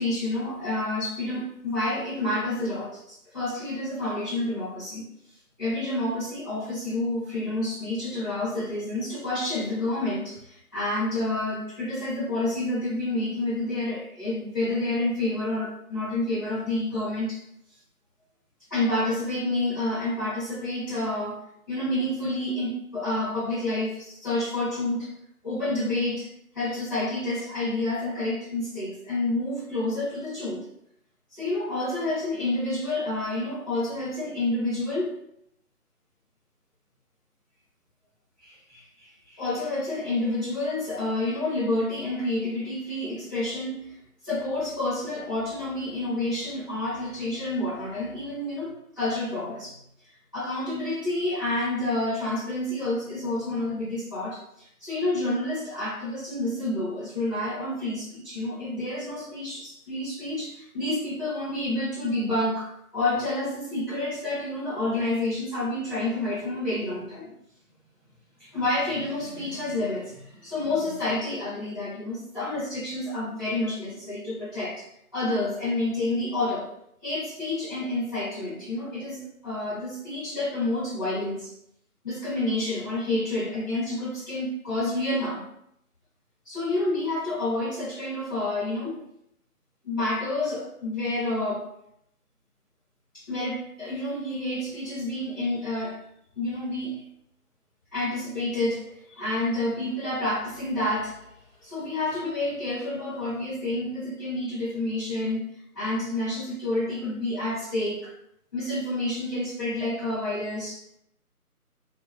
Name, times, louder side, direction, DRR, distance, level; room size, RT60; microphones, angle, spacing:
voice 1, 0.0-5.1 5.6-17.4 18.7-21.4 21.7-25.1 25.4-26.3 26.5-30.6 31.3-35.1 38.4-43.9 44.2-49.8 50.3-67.3 68.4-74.9 75.1-76.7 77.0-81.5 82.0-85.4 86.4-89.0 89.8-91.7 93.1-96.0 96.3-97.0 97.9-101.2 101.6-108.1 108.5-110.8, left 2 dB, 15° left, -16 dB, 0.8 m, -29 dB
3.3 x 2.3 x 2.2 m, 0.75 s
figure-of-eight pair, 160°, 46 cm